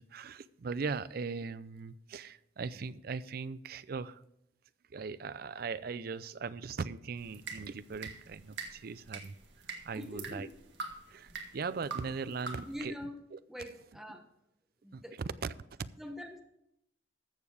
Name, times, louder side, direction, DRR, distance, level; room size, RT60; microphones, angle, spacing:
voice 1, 0.0-4.2 4.9-9.3 9.8-10.5 11.1-12.9 13.3-13.4 14.9-15.5, right 5 dB, 55° right, 16 dB, 0.4 m, -39 dB
sound 1, 7.2-12.8, right 4 dB, 75° right, 1.8 m, -45 dB
voice 2, 9.9-10.5 11.3-11.4 12.6-13.2 13.5-14.3 14.8-15.3 16.0-16.4, left 1 dB, ahead, 4 dB, 1.1 m, -44 dB
13.5 x 7.2 x 4.8 m, 0.80 s
head